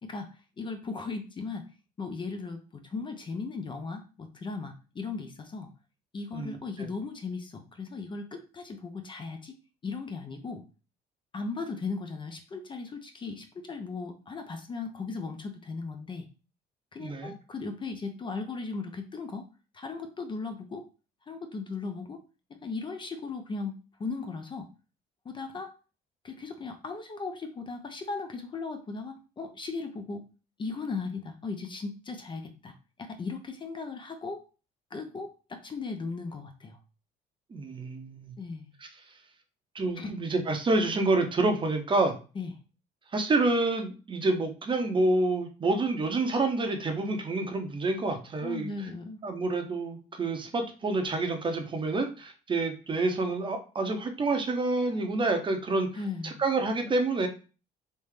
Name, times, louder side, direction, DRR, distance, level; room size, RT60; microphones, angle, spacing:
voice 1, 0.6-1.6 2.0-5.7 6.1-9.6 9.8-10.6 11.3-16.3 16.9-19.5 19.7-20.9 21.3-22.2 22.5-24.7 25.2-25.7 26.2-30.2 30.6-32.7 33.0-34.4 34.9-36.8 38.4-38.7 40.0-40.1 42.4-42.5 48.4-49.2 55.9-56.4, left 4 dB, 30° left, 6 dB, 0.5 m, -37 dB
voice 2, 6.3-6.9 17.0-17.3 37.5-38.3 39.7-42.1 43.1-48.7 49.2-55.9 56.2-57.3, right 2 dB, 30° right, 5 dB, 0.7 m, -28 dB
3.5 x 2.7 x 3.2 m, 0.34 s
cardioid pair, 110°, 17 cm